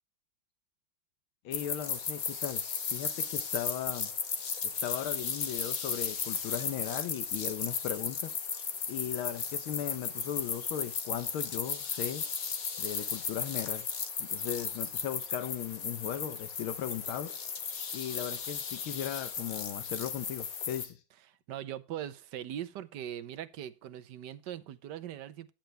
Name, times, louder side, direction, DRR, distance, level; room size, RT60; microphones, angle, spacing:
voice 1, 1.4-2.6 2.9-4.1 4.6-8.4 8.9-12.2 12.8-13.8 14.2-17.4 17.9-21.0, left 10 dB, 80° left, 1.8 m, -37 dB
sound 1, 1.5-20.9, left 6 dB, 45° left, 1.5 m, -35 dB
voice 2, 21.5-25.5, right 11 dB, 65° right, 1.2 m, -40 dB
10.5 x 8.8 x 3.3 m
omnidirectional pair, 2.3 m